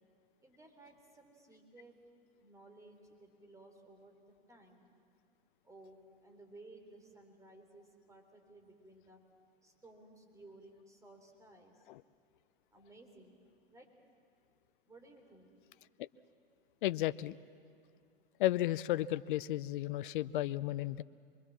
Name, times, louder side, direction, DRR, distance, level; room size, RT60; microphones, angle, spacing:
voice 1, 0.4-2.0 2.4-4.1 4.5-4.9 5.6-9.2 9.6-11.9 12.7-13.3 13.7-13.9 14.9-15.5, right 2 dB, 10° right, 4 dB, 3.7 m, -57 dB
voice 2, 16.8-17.4 18.4-21.0, left 15 dB, 60° left, 17 dB, 0.6 m, -33 dB
25.0 x 22.0 x 7.4 m, 2.4 s
hypercardioid pair, 105°, 29 cm